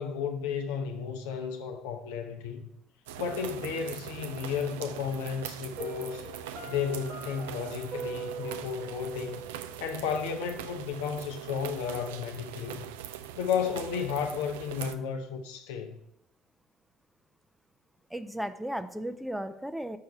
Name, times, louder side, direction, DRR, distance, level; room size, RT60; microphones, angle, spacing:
voice 1, 0.0-2.7 3.2-6.3 6.7-9.4 9.8-12.8 13.4-16.0, left 6 dB, 75° left, 0.7 m, -33 dB
sound 1, 3.1-14.9, right 10 dB, 80° right, 0.3 m, -42 dB
Piano, 5.8-10.7, right 3 dB, 60° right, 1.4 m, -42 dB
voice 2, 18.1-20.0, equal, 5° right, 0.5 m, -35 dB
6.5 x 4.5 x 5.3 m
hypercardioid pair, 60°, 0 cm